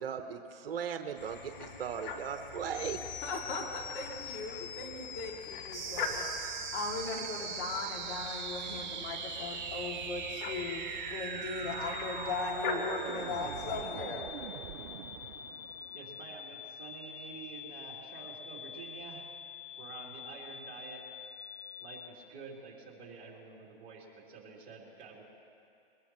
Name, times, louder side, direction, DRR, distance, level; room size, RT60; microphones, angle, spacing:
voice 1, 0.0-3.0, right 7 dB, 65° right, 7 dB, 1.0 m, -37 dB
sound 1, 1.1-13.8, left 4 dB, 50° left, 1.8 m, -44 dB
sound 2, 2.7-22.1, left 9 dB, 20° left, 0.4 m, -46 dB
voice 2, 2.9-14.2, left 3 dB, 35° left, -1 dB, 2.4 m, -38 dB
sound 3, 5.7-16.7, right 12 dB, 50° right, 0.4 m, -41 dB
voice 3, 15.9-19.3 19.8-21.0 21.8-25.2, right 5 dB, 25° right, -3 dB, 3.2 m, -49 dB
22.0 x 20.0 x 3.0 m, 2.6 s
hypercardioid pair, 130°, 32 cm